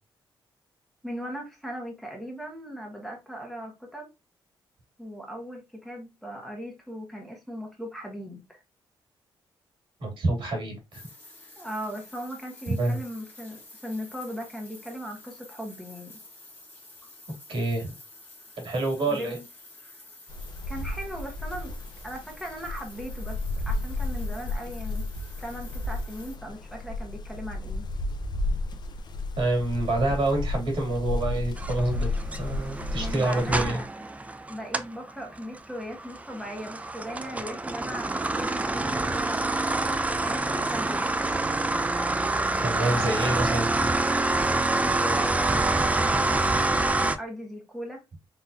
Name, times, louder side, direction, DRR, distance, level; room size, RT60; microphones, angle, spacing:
voice 1, 1.0-4.1 5.0-8.6 11.6-16.1 19.1-19.5 20.7-21.7 22.0-25.1 25.4-27.9 33.0-33.9 34.5-39.9 40.2-41.1 44.8-46.9 47.2-48.0, equal, ahead, 1.3 m, -38 dB
voice 2, 10.0-11.0 12.8-13.0 17.5-17.9 18.6-19.4 29.4-32.1 32.4-33.8 42.6-43.7, right 2 dB, 70° right, 2.5 m, -27 dB
sound 1, 10.9-26.4, left 2 dB, 20° left, 1.5 m, -50 dB
sound 2, 20.3-33.7, left 2 dB, 55° left, 0.7 m, -33 dB
sound 3, 31.6-35.0 35.4-47.2, right 2 dB, 15° right, 0.4 m, -27 dB
4.0 x 3.8 x 2.7 m
cardioid pair, 105°, 9 cm